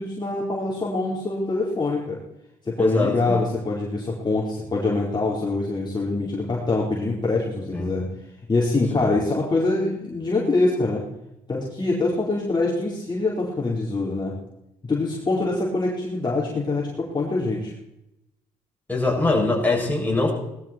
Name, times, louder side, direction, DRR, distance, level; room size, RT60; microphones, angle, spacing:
voice 1, 0.0-2.2 2.6-8.1 8.5-11.0 11.5-14.4 14.8-17.7, left 3 dB, 30° left, -4 dB, 4.4 m, -24 dB
voice 2, 2.8-3.4 7.7-7.9 9.0-9.2 18.9-20.3, left 2 dB, 10° left, -3 dB, 7.6 m, -23 dB
19.5 x 13.5 x 4.5 m, 0.88 s
supercardioid pair, 65°, 16 cm